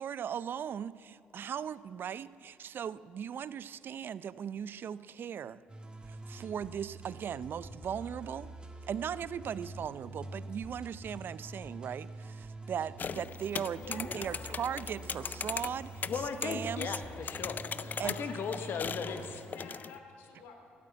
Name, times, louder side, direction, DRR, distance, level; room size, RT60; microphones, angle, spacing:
voice 1, 0.0-5.6 6.1-8.5 8.9-17.0 18.0-18.1, right 8 dB, 60° right, 17 dB, 0.4 m, -38 dB
sound 1, 5.7-19.4, right 2 dB, 25° right, 1.6 m, -46 dB
sound 2, 13.0-20.0, left 6 dB, 45° left, 0.4 m, -40 dB
voice 2, 13.7-14.3 18.0-20.5, left 4 dB, 90° left, 2 dB, 2.5 m, -49 dB
voice 3, 16.1-19.4, left 6 dB, 65° left, 8 dB, 1.0 m, -37 dB
13.5 x 8.5 x 9.6 m, 2.7 s
supercardioid pair, 60°, 4 cm